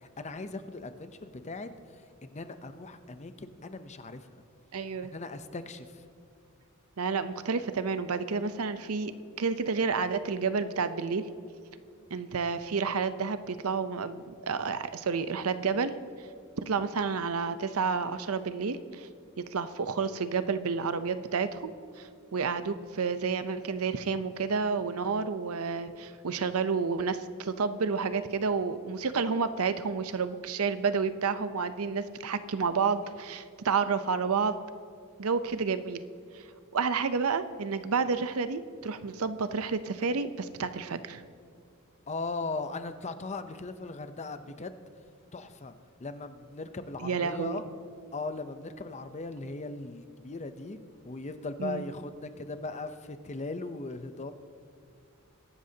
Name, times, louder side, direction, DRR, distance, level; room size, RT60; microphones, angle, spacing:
voice 1, 0.0-1.7 2.2-4.3 5.1-6.0 42.1-44.8 45.3-45.7 46.0-47.6 48.1-50.8 51.0-54.3, left 3 dB, 30° left, 10 dB, 0.7 m, -38 dB
voice 2, 4.7-5.1 7.0-9.1 9.4-11.2 12.1-15.9 16.6-19.1 19.5-21.7 22.0-34.6 35.2-36.0 36.7-41.2 47.0-47.6 51.6-51.8, right 5 dB, 85° right, 11 dB, 0.7 m, -30 dB
22.5 x 11.5 x 2.8 m, 2.4 s
head